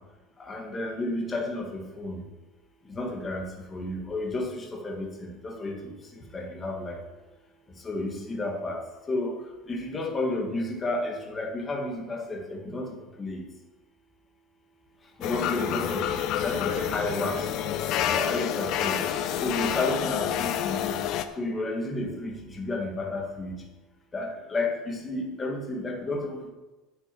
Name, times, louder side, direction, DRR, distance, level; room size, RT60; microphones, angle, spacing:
voice 1, 0.5-2.2 3.0-3.5 3.7-5.1 5.4-5.8 6.3-6.9 7.9-8.8 9.1-9.3 9.7-13.4 15.2-16.0 16.4-17.3 18.0-19.0 19.4-20.9 21.4-23.6 24.1-26.5, left 2 dB, 15° left, 0 dB, 1.9 m, -31 dB
sound 1, 15.2-21.2, left 10 dB, 45° left, 0.7 m, -28 dB
10.0 x 6.6 x 8.3 m, 1.2 s
cardioid pair, 165°, 0 cm